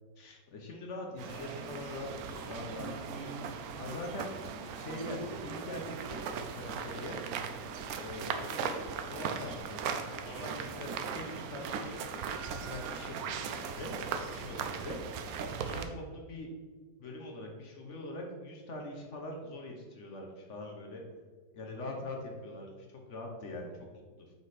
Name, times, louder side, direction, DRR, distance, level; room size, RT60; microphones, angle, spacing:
voice 1, 0.2-3.3 3.8-4.3 4.8-6.2 6.5-7.2 8.0-13.9 14.3-15.0 15.6-16.5 17.0-21.0 21.5-24.3, left 1 dB, 50° left, 1 dB, 1.0 m, -43 dB
sound 1, 1.2-15.8, right 6 dB, 70° right, 0.9 m, -38 dB
5.4 x 4.8 x 4.1 m, 1.4 s
omnidirectional pair, 1.9 m